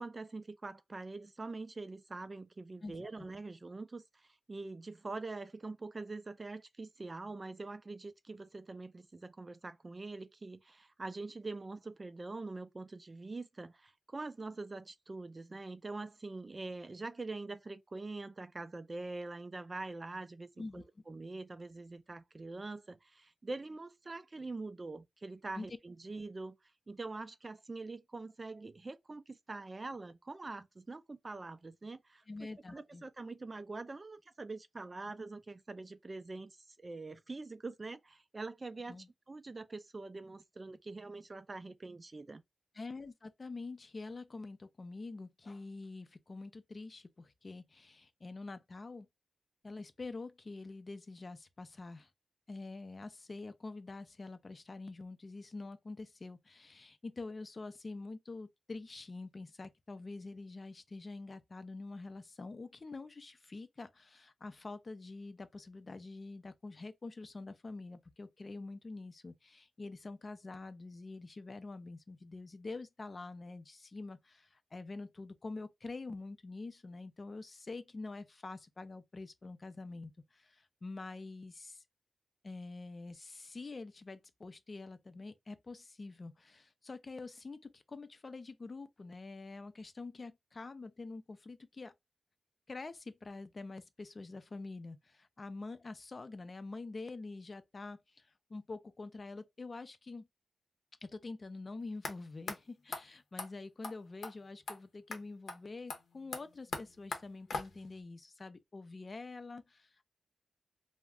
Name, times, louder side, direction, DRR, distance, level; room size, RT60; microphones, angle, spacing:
voice 1, 0.0-20.5 20.7-26.6 26.9-32.2 32.7-39.0 39.3-42.4, right 3 dB, 40° right, 0.3 m, -44 dB
voice 2, 2.8-3.3 20.6-20.8 25.5-25.7 32.3-33.0 38.9-39.1 42.7-49.1 49.6-52.1 52.5-81.8 82.4-91.9 92.7-100.3 101.0-110.0, left 3 dB, 45° left, 0.4 m, -46 dB
sound 1, 102.0-102.1 102.5-102.6 102.9-103.0 103.4-103.5 103.8-103.9 104.2-104.3 104.7-104.8 105.1-105.2 105.5-105.6 105.9-108.0, left 3 dB, 75° left, 0.7 m, -41 dB
2.3 x 2.1 x 3.4 m
cardioid pair, 55°, 0 cm